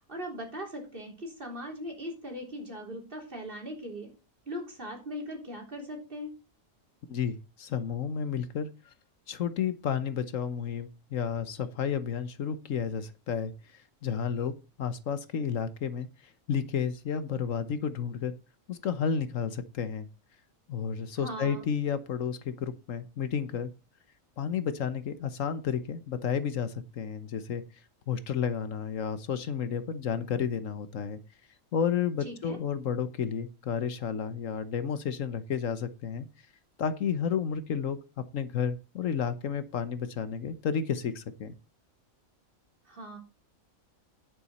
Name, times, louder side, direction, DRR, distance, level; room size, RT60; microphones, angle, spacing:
voice 1, 0.0-4.1 4.5-6.3 21.1-21.7 32.2-32.6 42.9-43.2, equal, 40° right, 1 dB, 3.7 m, -39 dB
voice 2, 7.1-8.9 9.3-16.1 16.5-18.3 18.7-20.1 20.7-23.7 24.4-27.6 28.1-31.2 31.7-36.3 36.8-38.0 38.3-41.5, left 7 dB, 70° left, 13 dB, 1.3 m, -31 dB
10.5 x 8.7 x 4.2 m, 0.30 s
omnidirectional pair, 1.4 m